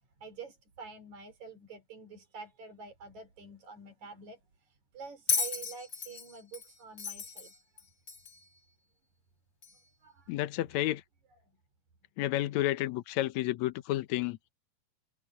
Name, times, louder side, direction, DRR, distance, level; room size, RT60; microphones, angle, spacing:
voice 1, 0.2-7.5 10.0-10.3, right 4 dB, 60° right, 5.5 m, -48 dB
Bell, 5.3-8.5 9.6-9.7, left 5 dB, 35° left, 1.7 m, -34 dB
voice 2, 10.3-11.0 12.2-14.4, left 15 dB, 70° left, 2.0 m, -31 dB
omnidirectional pair, 3.8 m